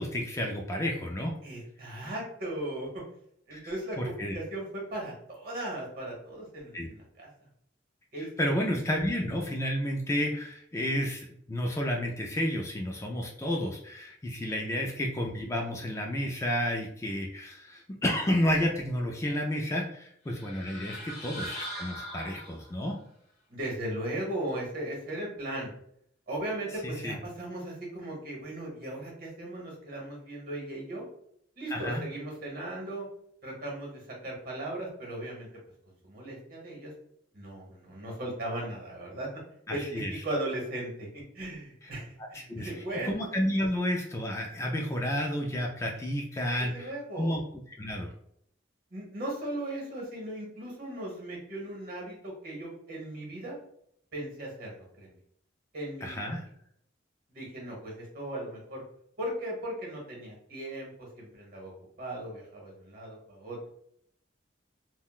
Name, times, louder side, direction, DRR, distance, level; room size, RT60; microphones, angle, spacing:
voice 1, 0.0-1.3 3.5-3.7 4.0-4.3 6.7-6.9 8.2-23.0 26.8-27.2 31.7-32.0 39.7-40.1 42.5-42.7 43.1-47.4 47.8-48.1 56.0-56.4, equal, 15° left, 0 dB, 0.3 m, -31 dB
voice 2, 1.4-3.0 3.5-7.3 8.1-8.5 14.5-14.6 20.6-21.0 23.5-25.7 26.3-31.0 31.6-33.1 33.4-35.5 36.0-36.9 37.3-39.3 39.7-43.2 46.6-47.4 48.9-53.6 54.1-55.1 55.7-56.3 57.3-58.8 59.2-61.7 62.0-63.7, right 1 dB, 50° right, -2 dB, 1.2 m, -37 dB
sound 1, 20.3-22.9, equal, 40° left, 0.8 m, -40 dB
3.6 x 2.1 x 2.3 m, 0.69 s
head